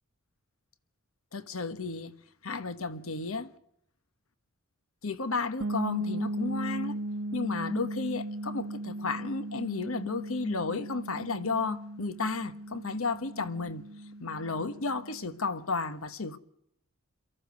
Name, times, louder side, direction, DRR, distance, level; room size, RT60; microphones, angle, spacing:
voice 1, 1.3-2.1 2.4-3.5 5.0-7.0 7.3-13.8 14.2-16.4, left 3 dB, 70° left, 1.3 m, -33 dB
sound 1, 5.6-15.3, right 1 dB, 80° right, 1.2 m, -37 dB
23.0 x 14.5 x 9.5 m
head